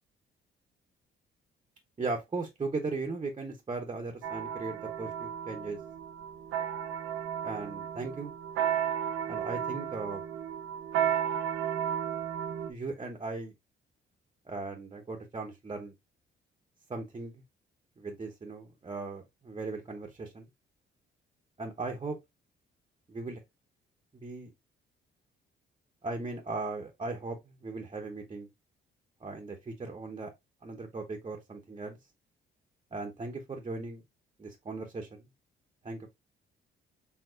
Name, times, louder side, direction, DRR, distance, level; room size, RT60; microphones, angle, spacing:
voice 1, 2.0-5.8 7.4-8.3 9.3-10.2 12.7-13.5 14.5-15.9 16.9-17.4 18.0-20.5 21.6-22.2 23.1-23.4 24.1-24.5 26.0-28.5 29.2-30.3 30.6-32.0 32.9-34.0 34.4-35.3 35.8-36.1, right 3 dB, 25° right, 0.8 m, -38 dB
sound 1, 4.2-12.7, right 9 dB, 90° right, 0.6 m, -33 dB
4.6 x 3.5 x 2.4 m
cardioid pair, 90°, 20 cm